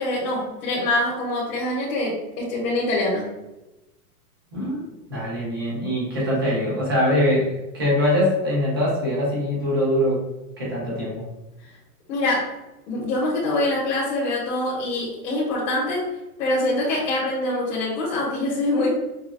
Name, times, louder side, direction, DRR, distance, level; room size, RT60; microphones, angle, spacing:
voice 1, 0.0-3.3 12.1-12.5 12.9-16.0 16.4-18.9, left 2 dB, 65° left, -6 dB, 1.4 m, -24 dB
voice 2, 4.5-4.8 5.1-10.2 10.6-11.2, left 1 dB, 15° right, -6 dB, 0.4 m, -23 dB
5.9 x 2.2 x 2.2 m, 0.98 s
hypercardioid pair, 160°, 47 cm